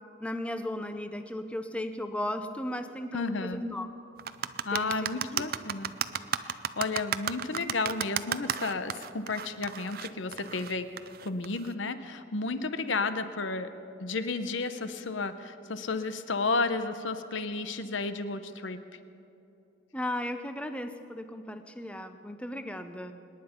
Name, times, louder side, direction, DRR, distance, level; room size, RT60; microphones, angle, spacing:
voice 1, 0.2-3.9 4.7-5.2 19.9-23.1, left 1 dB, 5° left, 8 dB, 0.7 m, -35 dB
voice 2, 3.1-3.6 4.6-5.9 6.4-10.9 11.2-13.7 14.0-18.8, left 3 dB, 75° left, 10 dB, 0.9 m, -32 dB
sound 1, 4.2-11.7, right 8 dB, 50° right, 0.5 m, -33 dB
25.5 x 10.5 x 5.3 m, 2.8 s
head